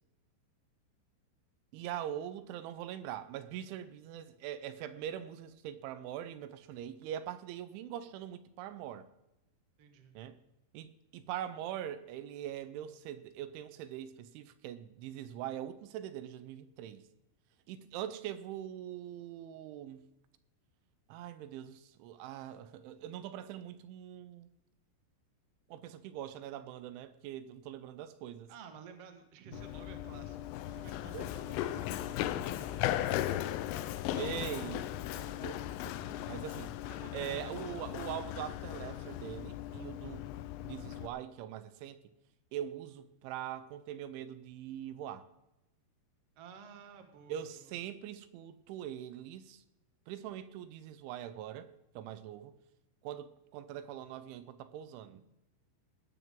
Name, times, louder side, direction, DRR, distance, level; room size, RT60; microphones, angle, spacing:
voice 1, 1.7-9.1 10.1-10.4 10.7-17.0 17.7-20.0 21.1-24.5 25.7-28.5 29.5-29.6 31.1-31.3 33.8-36.7 37.1-40.3 40.6-42.0 42.5-45.3 47.3-49.6 50.1-51.7 52.0-52.5 53.0-55.2, right 11 dB, 80° right, 3.1 m, -42 dB
voice 2, 9.8-10.1 28.5-30.4 30.7-32.8 36.9-37.7 46.4-47.7 55.1-55.2, right 6 dB, 60° right, 1.6 m, -53 dB
Run, 29.5-41.1, left 13 dB, 90° left, 3.3 m, -37 dB
19.0 x 14.0 x 3.8 m
omnidirectional pair, 5.5 m